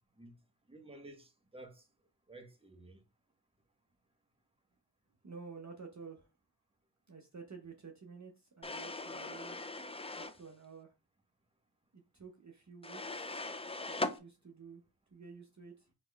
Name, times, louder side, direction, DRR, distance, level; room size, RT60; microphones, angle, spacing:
voice 1, 0.7-1.8 2.3-3.0, right 2 dB, 15° right, 1.0 m, -53 dB
voice 2, 5.2-6.3 7.1-9.6 10.2-10.9 11.9-13.4 13.8-14.8 15.1-15.9, right 5 dB, 40° right, 0.7 m, -51 dB
sound 1, 8.6-10.4 12.8-14.2, left 2 dB, 15° left, 0.4 m, -40 dB
4.1 x 3.0 x 3.3 m
wide cardioid pair, 50°, 43 cm